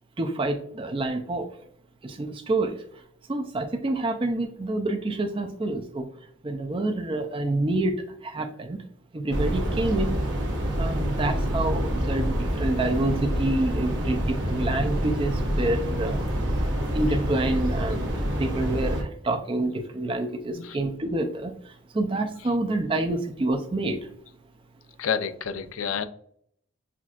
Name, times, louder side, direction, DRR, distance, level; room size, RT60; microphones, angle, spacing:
voice 1, 0.2-1.5 2.0-2.8 3.3-6.1 6.4-8.8 9.1-10.2 10.8-16.2 16.9-21.5 21.9-24.1, right 2 dB, 25° right, 5 dB, 0.4 m, -27 dB
sound 1, 9.3-19.0, equal, 55° right, 0.8 m, -27 dB
voice 2, 25.0-26.1, left 7 dB, 80° left, 10 dB, 0.4 m, -29 dB
5.8 x 2.4 x 2.4 m, 0.65 s
head